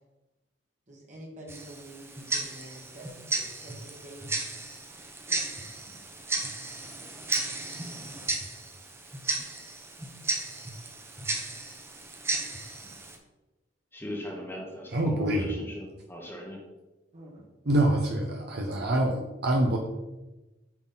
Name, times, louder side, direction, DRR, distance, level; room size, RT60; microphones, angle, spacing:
voice 1, 0.9-4.2 4.9-5.4 17.1-17.5, right 1 dB, 40° right, -3 dB, 1.4 m, -47 dB
Tick-tock, 1.5-13.2, right 3 dB, 15° right, 0.8 m, -34 dB
voice 2, 13.9-16.6, equal, 15° left, 0 dB, 1.0 m, -39 dB
voice 3, 14.9-15.5 17.7-19.8, right 1 dB, 60° right, 1 dB, 0.8 m, -25 dB
8.5 x 4.0 x 4.0 m, 1.0 s
head